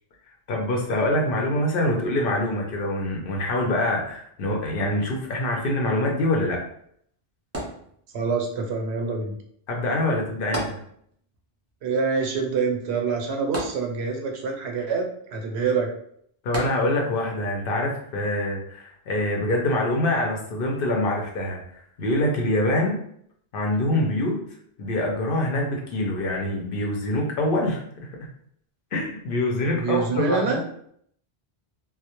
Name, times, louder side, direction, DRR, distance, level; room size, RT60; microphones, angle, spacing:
voice 1, 0.5-6.6 9.7-10.8 16.4-23.0 23.5-24.4 24.8-28.1 28.9-30.5, left 1 dB, 65° left, 0 dB, 0.7 m, -25 dB
sound 1, 7.5-8.4 10.5-11.4 11.7-11.8 13.5-14.4 16.5-17.3 17.9-18.0, right 1 dB, 25° right, 0.3 m, -33 dB
voice 2, 8.1-9.4 11.8-15.9 29.7-30.6, right 5 dB, 85° right, 2 dB, 0.9 m, -26 dB
2.2 x 2.0 x 2.8 m, 0.67 s
omnidirectional pair, 1.1 m